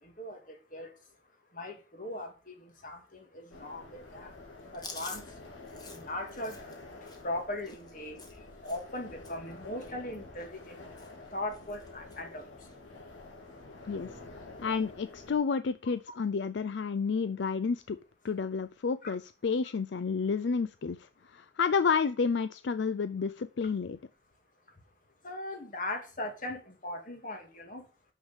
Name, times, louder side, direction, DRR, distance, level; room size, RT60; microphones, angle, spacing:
voice 1, 0.0-0.9 1.5-4.3 4.6-5.4 5.9-6.7 7.0-10.9 11.3-12.5 19.0-19.1 25.2-27.9, left 1 dB, 45° left, 2.2 m, -39 dB
sound 1, 3.5-15.4, left 2 dB, 90° left, 3.1 m, -49 dB
Chewing mastication, 4.7-9.0 9.2-9.5 9.8-10.7 11.0-11.3 11.5-12.2 12.6-12.8 13.8-14.2, left 3 dB, 20° left, 1.5 m, -49 dB
voice 2, 14.6-18.0 18.2-24.0, left 5 dB, 70° left, 0.4 m, -30 dB
6.6 x 6.2 x 7.3 m
head